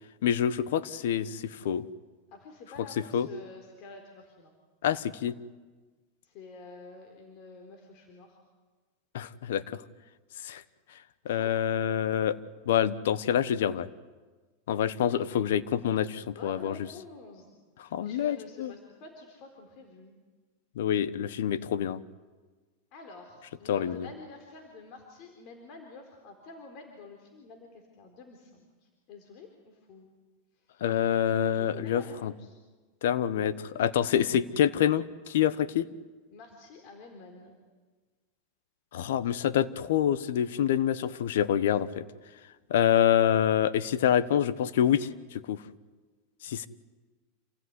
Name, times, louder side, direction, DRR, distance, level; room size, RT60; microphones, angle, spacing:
voice 1, 0.2-1.8 3.1-3.3 4.8-5.3 9.1-9.8 10.4-10.6 11.2-12.4 12.6-13.9 14.7-16.8 17.8-18.7 20.8-22.0 23.7-24.1 30.8-32.3 33.0-35.9 38.9-42.0 42.7-45.6 46.4-46.7, left 9 dB, 80° left, 15 dB, 1.1 m, -26 dB
voice 2, 2.3-4.5 6.2-8.4 11.3-11.5 16.2-17.5 17.9-20.2 22.9-30.1 30.6-30.8 31.5-32.6 36.3-37.6, left 3 dB, 50° left, 3 dB, 4.0 m, -49 dB
28.0 x 16.5 x 9.7 m, 1.3 s
supercardioid pair, 130°, 0 cm